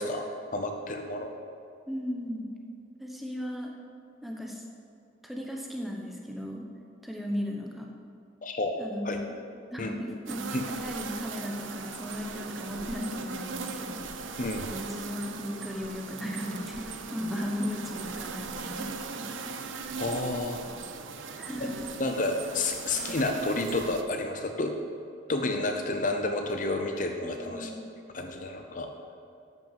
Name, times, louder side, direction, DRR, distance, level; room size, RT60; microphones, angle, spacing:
voice 1, 0.0-1.3 8.4-8.8 9.0-9.2 9.8-9.9 10.5-10.7 14.4-14.7 20.0-20.6 22.0-24.7 25.3-27.7 28.1-28.9, left 2 dB, 40° left, 4 dB, 0.7 m, -30 dB
voice 2, 1.9-2.5 3.0-3.7 4.2-4.6 5.2-6.7 7.0-7.9 8.8-9.4 9.7-14.1 14.7-19.4 21.4-21.9 27.2-27.8, left 1 dB, ahead, -1 dB, 1.1 m, -36 dB
sound 1, 10.3-24.0, right 4 dB, 90° right, 0.8 m, -39 dB
11.0 x 6.2 x 7.4 m, 2.5 s
head